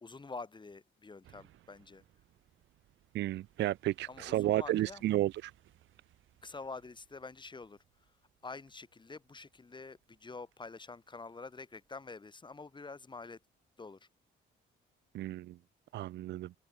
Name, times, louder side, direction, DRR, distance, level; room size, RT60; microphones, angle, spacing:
voice 1, 0.0-2.0 4.1-5.3 6.4-7.8 8.4-13.4 13.8-14.1, left 4 dB, 25° left, 1.8 m, -47 dB
sound 1, 1.2-12.7 13.1-13.2, right 13 dB, 80° right, 5.9 m, -67 dB
voice 2, 3.1-5.5 15.1-15.6 15.9-16.5, right 14 dB, 65° right, 0.4 m, -32 dB
cardioid pair, 90°, 20 cm